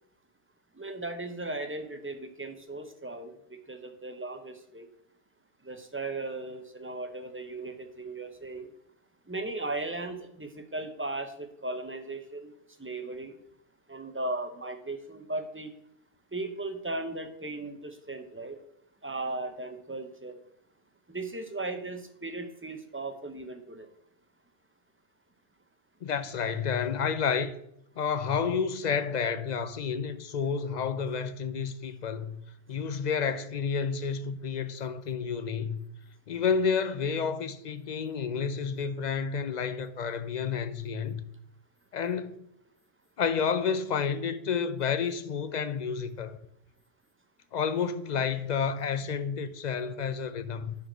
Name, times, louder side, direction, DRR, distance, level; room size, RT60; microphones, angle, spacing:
voice 1, 0.7-4.9 5.6-8.7 9.3-12.5 12.8-13.3 13.9-15.7 16.3-18.6 19.0-20.4 21.1-23.9, right 2 dB, 15° right, 0.7 m, -37 dB
voice 2, 26.0-27.5 28.0-32.4 32.7-35.8 36.3-41.2 41.9-42.4 43.2-46.4 47.5-50.7, left 6 dB, 50° left, 0.5 m, -30 dB
9.5 x 4.5 x 6.1 m
omnidirectional pair, 1.2 m